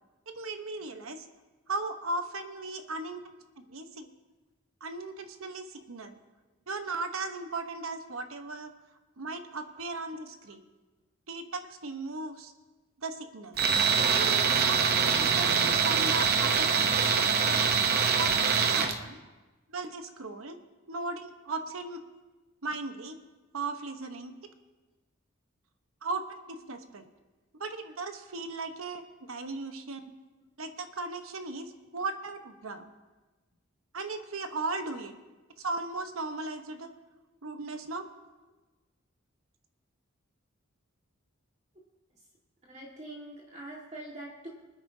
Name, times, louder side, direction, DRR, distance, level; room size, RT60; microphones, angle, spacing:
voice 1, 0.3-1.3 1.7-3.2 3.6-4.1 4.8-6.2 6.7-8.7 9.2-10.6 11.3-12.5 13.0-13.6 14.1-17.7 18.2-18.3 18.6-19.2 19.7-20.6 20.9-22.0 22.6-23.2 23.5-24.5 26.0-27.1 27.5-30.1 30.6-32.9 33.9-35.1 35.6-36.9 37.4-38.1, right 3 dB, 90° right, 7 dB, 1.0 m, -37 dB
Tools, 13.6-19.0, right 6 dB, 50° right, 0.8 m, -24 dB
voice 2, 42.7-44.5, right 1 dB, 35° right, -3 dB, 1.8 m, -44 dB
25.0 x 9.7 x 2.7 m, 1.2 s
head